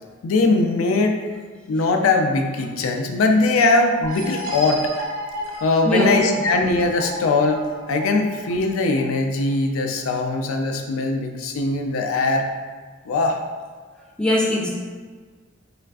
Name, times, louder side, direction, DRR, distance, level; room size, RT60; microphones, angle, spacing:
voice 1, 0.2-1.2 1.7-4.9 5.6-7.6 7.9-12.5 13.1-13.4, left 3 dB, 90° left, 3 dB, 0.3 m, -20 dB
sound 1, 4.0-9.5, equal, 75° right, 0.4 m, -33 dB
voice 2, 5.8-6.2 14.2-14.7, left 1 dB, 5° left, -4 dB, 0.3 m, -20 dB
3.2 x 2.5 x 2.3 m, 1.5 s
head